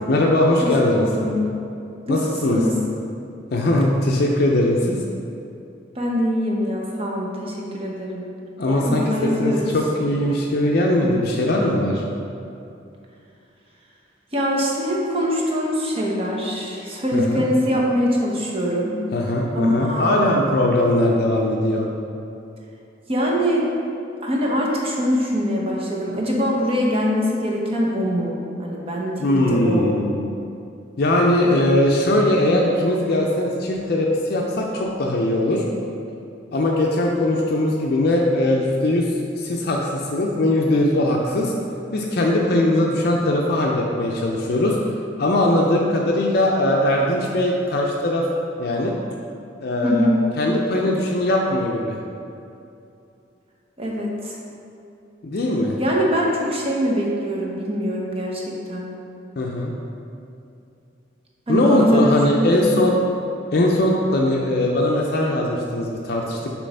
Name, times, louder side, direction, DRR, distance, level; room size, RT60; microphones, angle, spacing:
voice 1, 0.1-1.0 2.1-2.6 3.5-5.0 8.6-12.0 17.1-17.4 19.1-21.9 29.2-30.3 31.0-35.6 36.5-39.1 39.4-41.5 41.9-44.8 45.2-48.3 48.6-49.0 49.6-50.1 50.4-52.0 55.2-55.8 59.4-59.7 61.5-63.0 63.5-66.7, left 1 dB, 55° left, -1 dB, 0.5 m, -20 dB
voice 2, 0.6-1.5 2.1-2.8 5.9-8.2 8.6-9.7 14.3-19.0 19.5-20.3 23.1-23.6 24.2-29.9 49.8-50.3 53.8-54.4 55.8-58.9 61.5-63.0, equal, 30° right, -2 dB, 0.9 m, -23 dB
6.6 x 3.1 x 5.4 m, 2.6 s
head